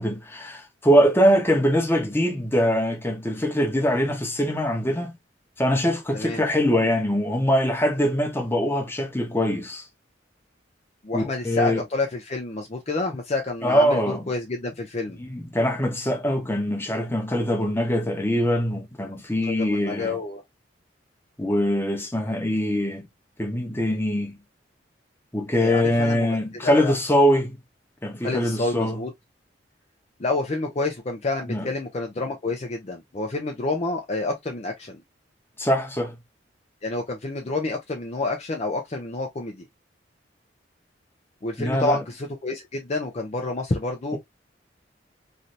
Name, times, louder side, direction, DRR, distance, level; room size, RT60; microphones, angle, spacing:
voice 1, 0.0-5.2 5.6-9.8 11.1-11.8 13.6-14.2 15.2-20.2 21.4-23.1 23.4-24.4 25.3-27.6 28.0-29.0 31.5-31.7 35.6-36.2 41.6-42.0, equal, 10° left, 0.9 m, -23 dB
voice 2, 6.1-6.4 11.0-15.2 19.5-20.4 25.5-26.4 26.6-27.0 28.2-29.1 30.2-35.0 36.8-39.6 41.4-44.2, left 2 dB, 35° left, 0.5 m, -28 dB
3.2 x 2.7 x 2.6 m
head